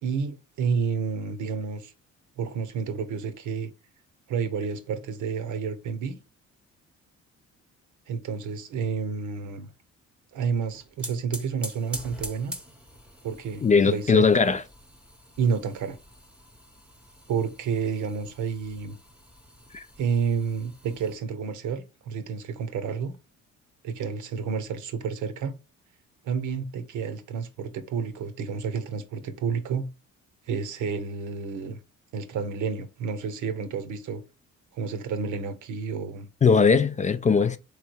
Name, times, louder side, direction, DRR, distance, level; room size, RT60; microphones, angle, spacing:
voice 1, 0.0-1.9 2.4-3.7 4.3-6.2 8.1-9.7 10.3-12.6 13.2-14.3 15.4-16.0 17.3-19.0 20.0-23.1 23.8-25.5 26.2-29.9 30.5-31.8 32.1-34.2 34.7-36.3, right 6 dB, 75° right, 0.9 m, -30 dB
sound 1, 10.5-21.1, equal, 5° right, 0.8 m, -44 dB
voice 2, 13.6-14.6 19.7-19.8 36.4-37.6, left 5 dB, 25° left, 0.3 m, -19 dB
3.6 x 3.3 x 4.4 m
cardioid pair, 90°, 30 cm